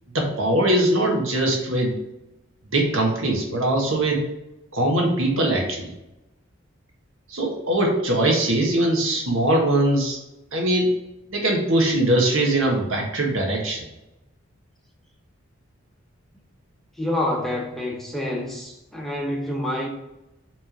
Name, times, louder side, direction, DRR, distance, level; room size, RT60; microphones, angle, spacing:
voice 1, 0.1-1.9 2.7-4.2 4.7-5.9 7.3-10.2 10.5-10.9 11.3-13.8, right 1 dB, 75° right, 0 dB, 1.6 m, -21 dB
voice 2, 17.0-19.9, left 1 dB, ahead, -1 dB, 0.8 m, -27 dB
6.1 x 3.5 x 5.2 m, 0.93 s
head